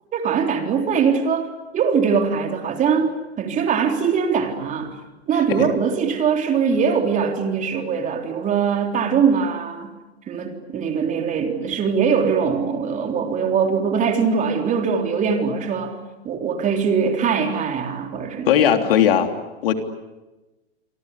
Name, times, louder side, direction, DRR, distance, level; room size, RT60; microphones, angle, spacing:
voice 1, 0.1-5.0 5.3-9.9 10.3-16.0 16.2-18.6, right 6 dB, 25° right, 4 dB, 3.7 m, -22 dB
voice 2, 18.5-19.3 19.6-19.7, left 9 dB, 60° left, 5 dB, 3.4 m, -17 dB
28.5 x 24.5 x 8.5 m, 1.1 s
hypercardioid pair, 120°, 32 cm